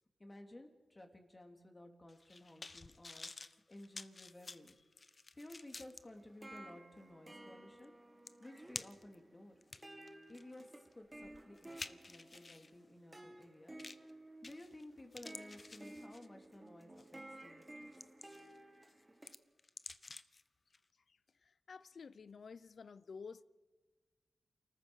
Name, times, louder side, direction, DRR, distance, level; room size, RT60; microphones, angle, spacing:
voice 1, 0.2-4.7 5.3-7.9 8.4-9.6 10.3-13.8 14.4-17.9, left 1 dB, 25° left, 3.1 m, -55 dB
sound 1, 2.1-6.0 6.6-6.7 7.8-7.9 8.3-9.2 9.6-12.7 13.8-14.1 14.4-14.8 15.1-16.4 17.0-17.2 17.7-18.6 18.9-20.4 20.7-20.8, left 3 dB, 40° left, 0.9 m, -51 dB
sound 2, 6.2-19.3, right 1 dB, 20° right, 1.9 m, -55 dB
voice 2, 21.1-23.4, left 5 dB, 70° left, 0.6 m, -52 dB
29.5 x 14.0 x 6.5 m
cardioid pair, 65°, 0 cm